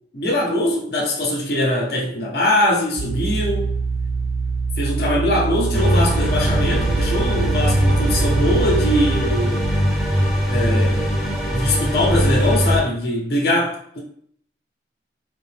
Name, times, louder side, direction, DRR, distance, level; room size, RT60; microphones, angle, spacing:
voice 1, 0.1-3.7 4.8-9.6 10.5-11.1 11.5-14.0, left 1 dB, 60° left, 1.0 m, -22 dB
sound 1, 3.0-9.3, right 4 dB, 55° right, 0.6 m, -24 dB
sound 2, 5.7-12.8, equal, ahead, 0.7 m, -21 dB
3.9 x 2.8 x 3.5 m
head